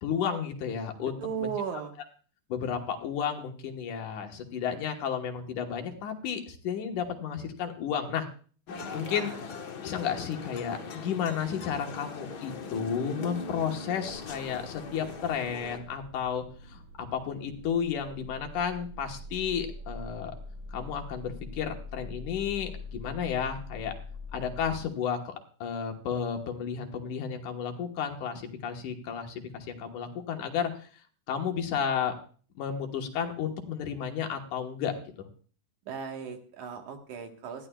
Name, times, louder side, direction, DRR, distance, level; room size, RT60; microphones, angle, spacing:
voice 1, 0.0-1.5 2.5-8.3 8.9-9.3 9.8-20.3 20.7-23.9 24.3-25.3 25.6-30.9 31.3-32.1 32.6-34.9, left 7 dB, 80° left, 3 dB, 2.8 m, -32 dB
voice 2, 1.2-1.9 8.9-9.4 35.9-37.7, right 7 dB, 75° right, 4 dB, 2.9 m, -36 dB
sound 1, 8.7-15.8, left 4 dB, 60° left, 1.0 m, -40 dB
sound 2, 14.1-24.8, left 2 dB, 35° right, 3.5 m, -44 dB
20.0 x 14.0 x 2.3 m, 0.42 s
omnidirectional pair, 3.6 m